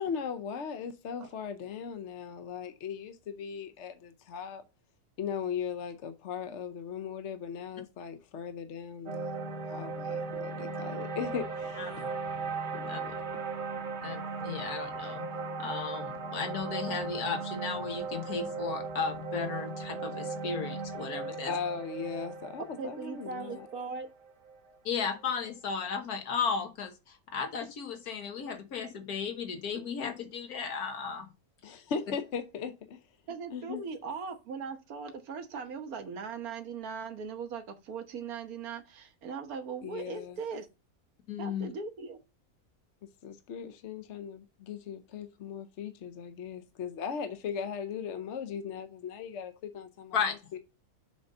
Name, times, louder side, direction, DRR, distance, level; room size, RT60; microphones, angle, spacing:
voice 1, 0.0-4.6 5.2-12.0 12.7-13.2 21.4-23.7 31.6-33.0 33.5-33.8 39.8-40.4 43.2-50.2 50.5-50.6, left 7 dB, 60° left, 0.9 m, -38 dB
sound 1, 9.1-25.3, right 4 dB, 35° right, 1.1 m, -37 dB
voice 2, 11.8-12.1 12.9-13.0 14.0-15.3 15.6-21.5 24.9-31.3 31.6-31.8 41.3-41.7 50.1-50.4, left 6 dB, 85° left, 1.7 m, -35 dB
voice 3, 22.8-24.1 33.3-40.7 41.4-42.2, right 5 dB, 75° right, 1.6 m, -39 dB
6.9 x 3.8 x 5.3 m
omnidirectional pair, 1.6 m